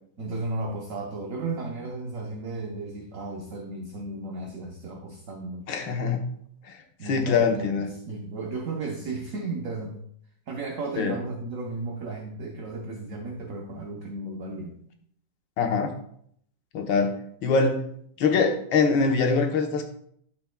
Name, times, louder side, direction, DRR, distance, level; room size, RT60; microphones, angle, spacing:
voice 1, 0.2-5.7 7.0-9.9 10.5-14.8, right 3 dB, 55° right, 2 dB, 1.0 m, -34 dB
voice 2, 5.7-6.2 7.0-7.9 11.0-11.1 15.6-15.9 16.7-17.9 18.2-19.8, left 4 dB, 80° left, 3 dB, 1.8 m, -23 dB
12.5 x 5.9 x 2.2 m, 0.67 s
omnidirectional pair, 2.1 m